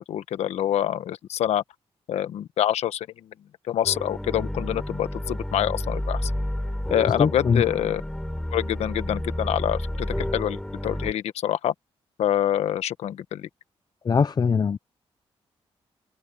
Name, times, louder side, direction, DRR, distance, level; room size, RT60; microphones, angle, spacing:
voice 1, 0.0-1.6 2.1-3.1 3.7-6.3 6.9-8.0 8.5-11.7 12.2-13.5, left 11 dB, 85° left, 1.3 m, -26 dB
sound 1, 3.8-11.1, left 1 dB, 5° left, 4.9 m, -30 dB
voice 2, 7.2-7.6 14.0-14.8, left 5 dB, 40° left, 0.6 m, -21 dB
open air
cardioid pair, 90°, 11 cm